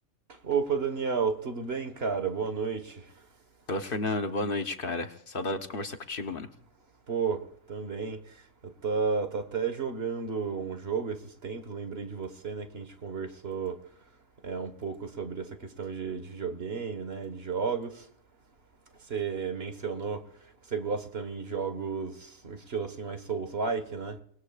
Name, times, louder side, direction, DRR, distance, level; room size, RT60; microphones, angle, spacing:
voice 1, 0.3-3.2 7.1-13.8 14.4-18.1 19.1-20.3 20.7-24.2, right 5 dB, 50° right, 1.7 m, -32 dB
voice 2, 3.7-6.5, left 2 dB, 45° left, 1.1 m, -32 dB
29.5 x 19.5 x 2.4 m
omnidirectional pair, 1.3 m